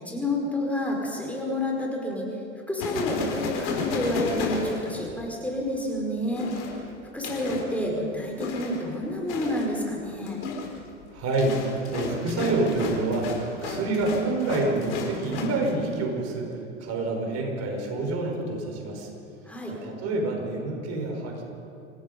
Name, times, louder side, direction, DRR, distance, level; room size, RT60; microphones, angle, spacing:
voice 1, 0.0-2.3 2.7-6.5 7.1-10.4 19.4-19.7, left 1 dB, 5° left, -1 dB, 5.1 m, -29 dB
sound 1, 2.8-5.4 6.3-7.7 8.4-8.9 9.3-9.7 10.1-15.7, left 5 dB, 65° left, 4.7 m, -33 dB
voice 2, 11.1-11.6 11.9-19.1 19.8-21.4, right 2 dB, 45° right, 2 dB, 5.2 m, -27 dB
27.5 x 17.5 x 5.4 m, 2.8 s
hypercardioid pair, 85°, 37 cm